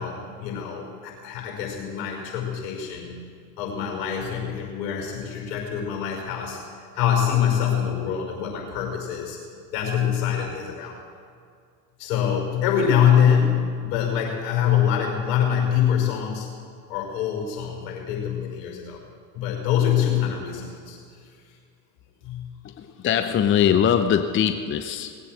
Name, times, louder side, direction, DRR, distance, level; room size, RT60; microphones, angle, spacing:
voice 1, 0.0-3.1 3.6-6.6 6.9-9.4 9.7-11.0 12.0-16.5 16.9-19.0 19.3-21.0 22.2-22.5, left 8 dB, 65° left, 1 dB, 5.5 m, -24 dB
voice 2, 22.6-25.2, left 8 dB, 25° left, 8 dB, 0.7 m, -22 dB
19.5 x 8.5 x 7.9 m, 2.2 s
hypercardioid pair, 95°, 49 cm